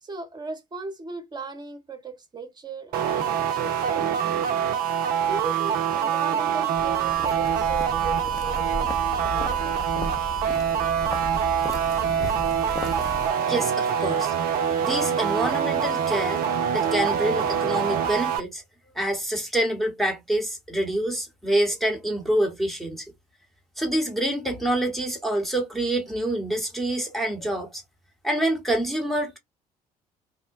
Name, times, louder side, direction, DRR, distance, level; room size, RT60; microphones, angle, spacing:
voice 1, 0.0-4.2 5.2-9.9 17.4-17.6, right 3 dB, 20° right, 0.9 m, -37 dB
sound 1, 2.9-18.4, right 8 dB, 50° right, 0.5 m, -25 dB
sound 2, 6.8-13.3, left 2 dB, 15° left, 0.6 m, -35 dB
voice 2, 13.5-14.3 14.8-16.5 16.7-18.6 18.9-23.0 23.8-27.8 28.2-29.4, right 1 dB, ahead, 1.0 m, -26 dB
2.9 x 2.1 x 2.5 m
figure-of-eight pair, 50°, 20 cm